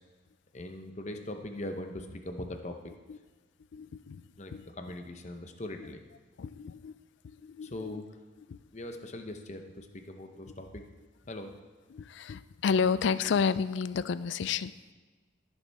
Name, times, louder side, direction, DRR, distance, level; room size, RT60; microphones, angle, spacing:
voice 1, 0.5-2.9 4.4-6.0 7.6-8.2 8.7-10.8 11.2-11.5, left 1 dB, 35° left, 5 dB, 0.8 m, -41 dB
voice 2, 3.7-4.2 4.5-4.7 6.4-6.9 7.2-8.0 8.5-8.6 11.9-14.9, left 6 dB, 60° left, 15 dB, 0.3 m, -31 dB
15.5 x 7.0 x 3.5 m, 1.3 s
head